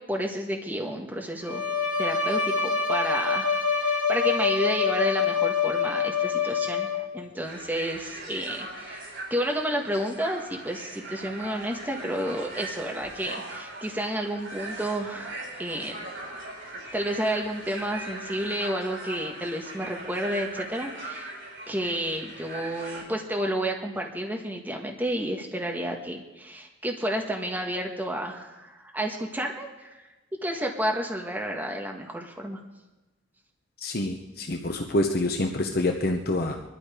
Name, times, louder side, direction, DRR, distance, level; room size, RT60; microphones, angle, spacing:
voice 1, 0.1-1.6 2.0-9.0 9.3-16.1 16.9-21.3 21.7-30.0 30.4-32.6, right 1 dB, 10° right, 1 dB, 1.5 m, -31 dB
Bowed string instrument, 1.4-7.2, left 6 dB, 90° left, 2.3 m, -26 dB
sound 1, 7.4-23.0, right 2 dB, 85° right, 4.9 m, -40 dB
voice 2, 33.8-36.6, left 1 dB, 55° left, 3 dB, 1.0 m, -27 dB
22.5 x 12.5 x 5.0 m, 1.1 s
head